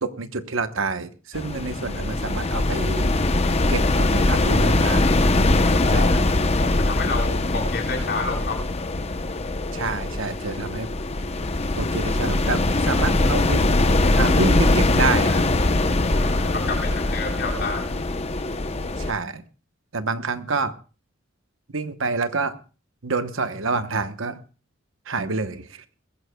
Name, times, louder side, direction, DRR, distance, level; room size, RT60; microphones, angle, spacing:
voice 1, 0.0-3.1 3.7-5.1 5.9-6.2 9.7-10.9 11.8-13.6 14.1-15.4 19.0-19.4 19.9-20.7 21.7-22.6 23.0-24.4 25.1-25.8, right 4 dB, 70° right, 10 dB, 1.0 m, -27 dB
sound 1, 1.3-19.1, left 2 dB, 30° left, 0.8 m, -22 dB
voice 2, 5.7-6.1 6.6-8.6 16.0-18.0, left 3 dB, 55° left, 1 dB, 4.0 m, -30 dB
21.0 x 14.5 x 2.3 m, 0.35 s
head